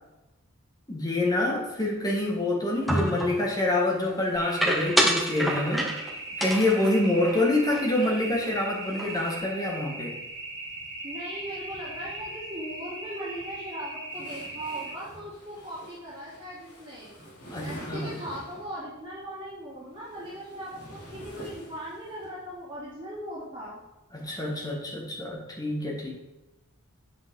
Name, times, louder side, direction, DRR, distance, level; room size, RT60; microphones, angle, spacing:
voice 1, 0.9-5.9 6.4-10.2 17.5-18.1 24.1-26.1, left 2 dB, 15° left, -1 dB, 1.6 m, -26 dB
sound 1, 2.9-3.5 4.6-6.1 6.4-8.1 8.4-8.6 8.9-9.4, right 1 dB, ahead, 0.9 m, -28 dB
sound 2, 4.3-14.9, right 2 dB, 50° right, 2.2 m, -39 dB
voice 2, 11.0-17.1 17.6-23.8, right 1 dB, 20° right, -10 dB, 2.8 m, -39 dB
sound 3, 14.1-18.8 19.8-22.3, right 1 dB, 90° left, 3.3 m, -45 dB
8.0 x 7.5 x 3.7 m, 0.99 s
head